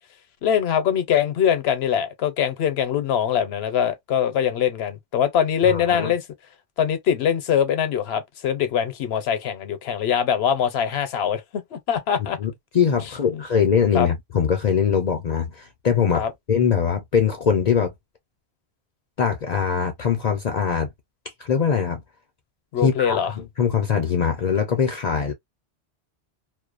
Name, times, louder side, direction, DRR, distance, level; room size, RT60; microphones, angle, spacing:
voice 1, 0.4-6.2 6.8-12.4 13.3-13.4 13.9-14.1 16.1-16.3 22.7-23.3, left 8 dB, 75° left, 0.9 m, -23 dB
voice 2, 5.7-6.1 12.4-17.9 19.2-20.9 21.4-22.0 22.8-25.3, left 7 dB, 55° left, 0.5 m, -22 dB
2.6 x 2.1 x 2.3 m
omnidirectional pair, 1.1 m